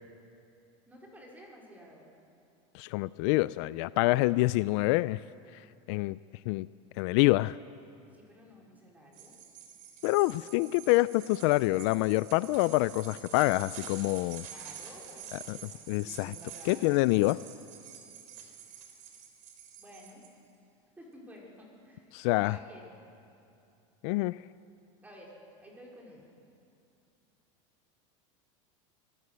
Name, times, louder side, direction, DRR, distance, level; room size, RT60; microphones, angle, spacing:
voice 1, 0.9-2.1 8.1-9.4 14.3-17.0 19.8-20.2 21.0-22.2 22.4-22.9 25.0-25.3 25.6-26.3, equal, 10° right, -2 dB, 4.5 m, -52 dB
voice 2, 2.7-5.2 5.9-6.2 6.5-6.7 7.0-7.6 10.0-14.4 15.5-15.6 15.9-16.3 16.7-17.4 22.1-22.6 24.0-24.4, left 20 dB, 60° left, 18 dB, 0.4 m, -26 dB
sound 1, 9.1-20.3, right 8 dB, 55° right, 3.9 m, -48 dB
24.5 x 14.5 x 8.0 m, 2.6 s
supercardioid pair, 145°, 16 cm